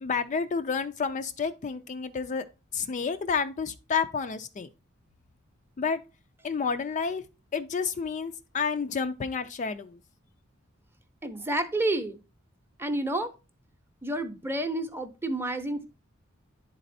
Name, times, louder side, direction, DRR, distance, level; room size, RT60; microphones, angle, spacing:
voice 1, 0.0-2.4 2.7-4.7 5.8-6.0 6.4-7.2 7.5-9.9, left 5 dB, 35° left, 0.3 m, -30 dB
voice 2, 11.2-12.2 12.8-13.3 14.0-15.8, right 1 dB, 10° right, 0.7 m, -29 dB
10.5 x 4.1 x 2.6 m
head